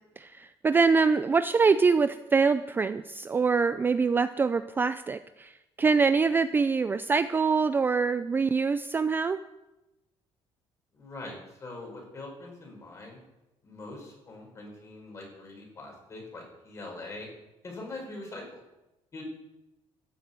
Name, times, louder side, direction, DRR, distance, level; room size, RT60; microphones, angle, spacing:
voice 1, 0.2-5.5 5.8-9.4, right 4 dB, 20° right, 12 dB, 0.4 m, -24 dB
voice 2, 10.9-13.2 13.6-17.3 17.6-18.6 19.1-19.2, left 2 dB, 30° left, 0 dB, 5.0 m, -43 dB
14.5 x 7.6 x 8.2 m, 0.98 s
cardioid pair, 155°, 11 cm